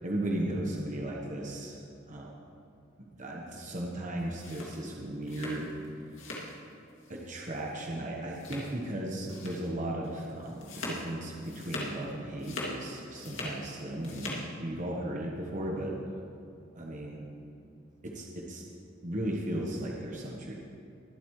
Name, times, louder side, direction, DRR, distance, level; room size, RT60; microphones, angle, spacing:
voice 1, 0.0-1.8 2.1-2.2 3.2-5.7 7.1-15.9 16.8-17.2 18.0-18.6 19.0-20.5, right 1 dB, 40° right, -2 dB, 1.2 m, -36 dB
sound 1, 4.2-6.6 6.9-7.3 7.5-7.7 8.3-8.9 9.3-9.7 10.0-12.0 12.3-13.6 13.9-14.4, left 2 dB, 75° left, 2.4 m, -41 dB
22.5 x 8.0 x 3.2 m, 2.6 s
head